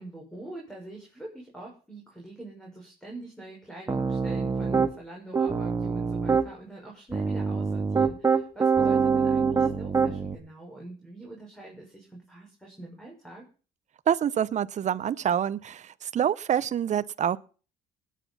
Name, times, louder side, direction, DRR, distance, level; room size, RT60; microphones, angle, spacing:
voice 1, 0.0-13.4, right 2 dB, 5° left, -1 dB, 6.4 m, -44 dB
Piano, 3.9-4.9 5.3-6.5 7.1-10.3, right 5 dB, 20° right, 2.0 m, -24 dB
voice 2, 14.1-17.4, right 9 dB, 45° right, 16 dB, 0.9 m, -26 dB
19.5 x 9.4 x 5.6 m, 0.38 s
cardioid pair, 110°, 17 cm